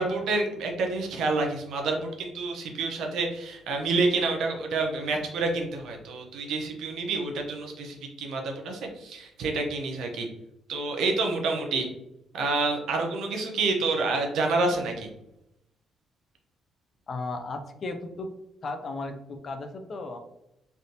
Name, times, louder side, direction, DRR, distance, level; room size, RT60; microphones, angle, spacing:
voice 1, 0.0-10.3 10.7-11.9 12.3-15.1, right 3 dB, 80° right, 2 dB, 0.7 m, -28 dB
voice 2, 17.1-18.3 18.6-20.2, left 3 dB, 45° left, 6 dB, 0.5 m, -35 dB
3.4 x 2.5 x 2.7 m, 0.85 s
cardioid pair, 90°, 0 cm